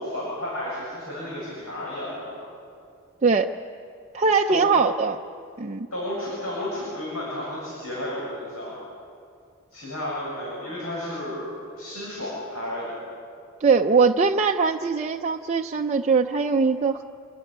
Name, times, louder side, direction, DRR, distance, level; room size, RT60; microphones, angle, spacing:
voice 1, 0.0-2.4 4.5-4.8 5.9-8.8 9.7-13.0, left 1 dB, 80° left, -6 dB, 7.5 m, -32 dB
voice 2, 4.1-5.2 5.6-5.9 13.6-17.0, right 5 dB, 30° right, 2 dB, 0.6 m, -21 dB
27.5 x 15.0 x 9.9 m, 2.4 s
head